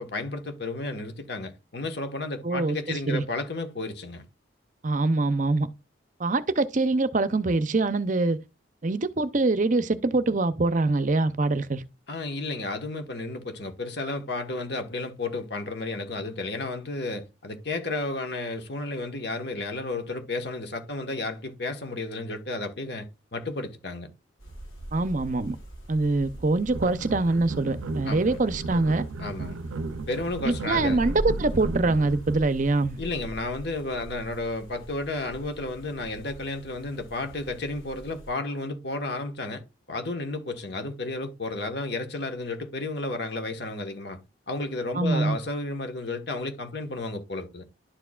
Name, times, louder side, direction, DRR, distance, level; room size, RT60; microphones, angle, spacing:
voice 1, 0.0-4.2 12.1-24.1 28.1-28.4 29.2-29.6 30.1-31.0 33.0-39.6 39.9-44.2 44.5-47.6, left 2 dB, 55° left, 1.3 m, -32 dB
voice 2, 2.4-3.2 4.8-5.7 6.2-8.4 8.8-11.8 24.9-25.6 25.9-29.0 30.4-33.0 44.9-45.4, right 3 dB, 40° right, 0.6 m, -24 dB
sound 1, 24.4-38.3, right 1 dB, 85° left, 4.6 m, -41 dB
sound 2, 26.7-32.3, right 3 dB, 85° right, 0.5 m, -35 dB
11.5 x 4.6 x 2.3 m
head